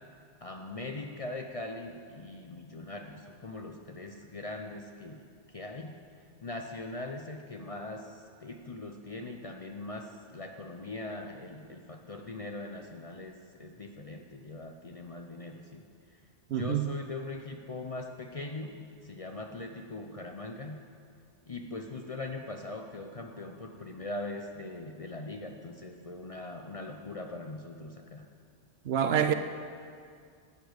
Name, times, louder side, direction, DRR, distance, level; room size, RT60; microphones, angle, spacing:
voice 1, 0.4-6.0 6.4-16.2 16.5-20.8 21.4-28.2, left 2 dB, 40° left, 0.6 m, -41 dB
voice 2, 16.5-16.9 28.9-29.3, right 8 dB, 65° right, 0.8 m, -26 dB
12.0 x 6.7 x 7.9 m
omnidirectional pair, 1.2 m